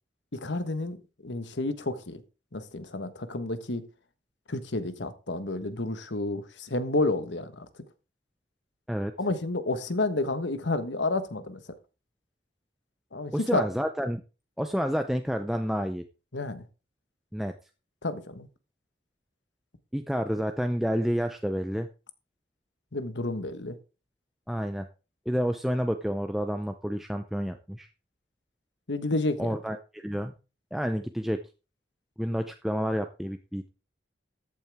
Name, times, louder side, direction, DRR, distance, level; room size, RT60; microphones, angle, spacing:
voice 1, 0.3-2.2 2.5-3.8 4.5-7.7 9.2-11.6 13.1-13.7 16.3-16.6 18.0-18.5 22.9-23.8 28.9-29.5, left 2 dB, 85° left, 1.3 m, -30 dB
voice 2, 13.3-14.2 14.6-16.0 17.3-17.5 19.9-21.9 24.5-24.9 25.3-27.9 29.4-30.3 30.7-31.4 32.2-33.7, equal, ahead, 0.6 m, -29 dB
14.0 x 8.7 x 3.5 m
head